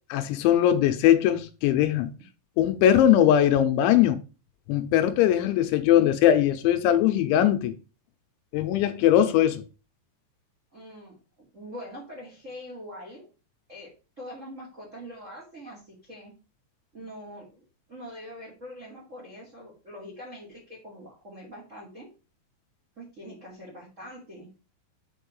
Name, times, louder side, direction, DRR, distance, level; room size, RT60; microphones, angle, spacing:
voice 1, 0.1-2.1 2.6-4.2 4.7-7.7 8.5-9.6, left 11 dB, 85° left, 3.0 m, -20 dB
voice 2, 10.7-13.3 13.7-13.9 14.2-16.3 16.9-22.1 22.9-24.5, equal, 30° right, 1.5 m, -43 dB
7.1 x 4.6 x 5.1 m
omnidirectional pair, 5.5 m